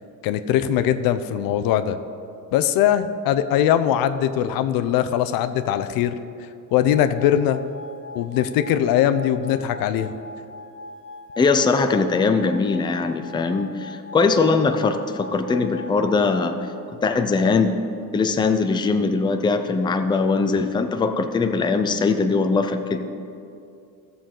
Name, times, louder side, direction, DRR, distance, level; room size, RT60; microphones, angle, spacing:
voice 1, 0.2-2.0 2.5-6.1 6.7-7.6 8.1-10.1, left 10 dB, 85° left, 11 dB, 0.6 m, -21 dB
sound 1, 6.7-16.4, left 2 dB, 90° right, 2.2 m, -41 dB
voice 2, 11.4-16.6 17.0-17.7 18.1-23.1, left 4 dB, 15° left, 7 dB, 0.4 m, -21 dB
14.0 x 6.9 x 3.8 m, 2.5 s
cardioid pair, 135°, 34 cm